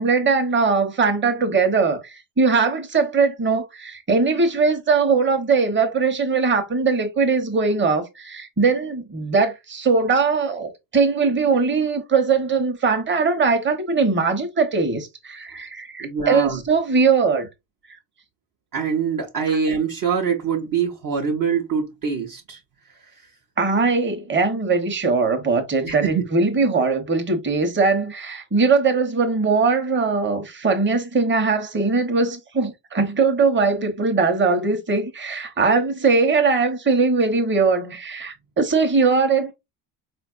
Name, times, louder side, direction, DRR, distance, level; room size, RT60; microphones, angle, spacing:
voice 1, 0.0-17.5 23.6-39.5, right 4 dB, 25° right, 1.0 m, -20 dB
voice 2, 16.0-16.6 18.7-22.6 25.8-26.3, right 6 dB, 45° right, 0.8 m, -24 dB
4.1 x 2.5 x 2.4 m
supercardioid pair, 85°, 48 cm